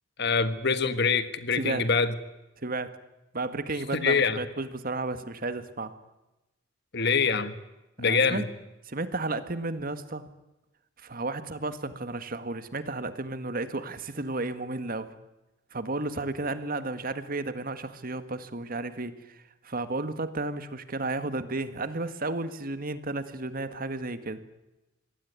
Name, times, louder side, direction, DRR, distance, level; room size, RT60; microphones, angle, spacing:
voice 1, 0.2-2.1 3.9-4.4 6.9-7.6 8.0-8.4, left 5 dB, 60° left, 12 dB, 1.7 m, -25 dB
voice 2, 2.6-2.9 3.3-5.9 8.0-8.4 8.9-10.2 11.0-15.1 15.7-24.4, right 2 dB, 45° right, 11 dB, 1.7 m, -33 dB
26.0 x 21.0 x 9.6 m, 1.0 s
head